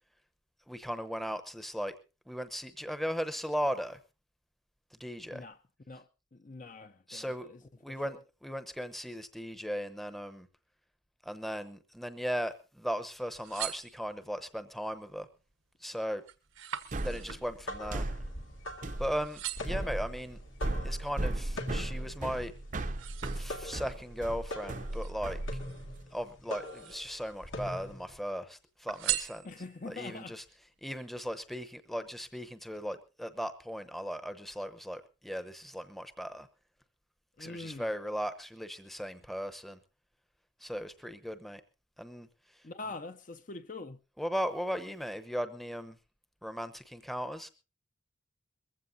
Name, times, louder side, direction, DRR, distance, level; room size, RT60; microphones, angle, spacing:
voice 1, 0.7-2.0 2.3-4.0 5.0-5.4 7.1-7.5 7.8-10.5 11.2-15.3 15.8-16.2 17.0-18.1 19.0-20.4 20.8-22.5 23.3-25.4 26.1-29.5 29.9-36.5 37.4-39.8 40.6-41.6 42.0-42.3 44.2-46.0 46.4-47.5, equal, ahead, 0.8 m, -37 dB
voice 2, 5.9-7.6 7.9-8.2 29.4-30.4 37.4-37.9 42.6-44.0, left 3 dB, 40° left, 0.6 m, -44 dB
sound 1, 13.2-14.5 15.0-15.4 15.8-18.9 19.2-19.9 20.5-22.0 22.4-24.0 24.9-26.0 26.5-27.3 27.7-28.4 28.9-29.9 30.4-30.5, right 12 dB, 90° right, 1.3 m, -41 dB
sound 2, 16.9-26.0, right 1 dB, 40° right, 0.6 m, -37 dB
sound 3, 17.4-28.2, left 1 dB, 75° left, 2.3 m, -43 dB
21.5 x 15.0 x 2.7 m
head